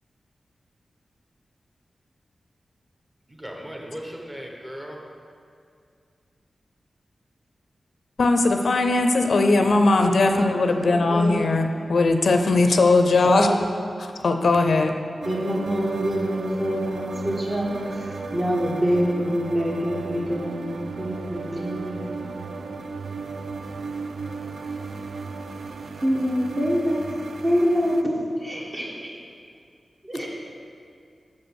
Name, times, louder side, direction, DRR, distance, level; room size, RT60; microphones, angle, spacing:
voice 1, 3.3-5.0, equal, 20° right, 0 dB, 1.1 m, -37 dB
voice 2, 8.2-13.6 14.0-14.9, left 3 dB, 70° left, 5 dB, 0.4 m, -19 dB
voice 3, 9.8-11.4 13.2-13.6 15.2-20.7 21.0-22.2 26.0-27.2 27.4-29.2 30.0-30.3, equal, 35° right, -3 dB, 1.6 m, -26 dB
sound 1, 15.2-28.0, right 4 dB, 85° right, 0.4 m, -35 dB
6.9 x 5.1 x 6.4 m, 2.3 s
wide cardioid pair, 100°, 0 cm